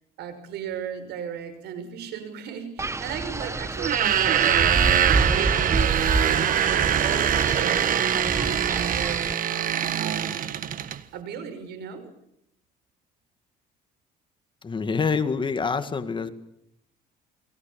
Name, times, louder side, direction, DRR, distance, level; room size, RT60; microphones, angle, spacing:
voice 1, 0.2-4.7 5.1-9.5 10.0-10.7 11.1-12.1, right 7 dB, 80° right, 10 dB, 6.0 m, -36 dB
Wind, 2.8-9.3, right 3 dB, 15° right, 1.3 m, -28 dB
sound 1, 3.8-11.0, right 9 dB, 55° right, 1.5 m, -23 dB
voice 2, 14.6-16.3, left 5 dB, 30° left, 9 dB, 2.2 m, -26 dB
29.5 x 22.0 x 7.2 m, 0.76 s
cardioid pair, 110°, 17 cm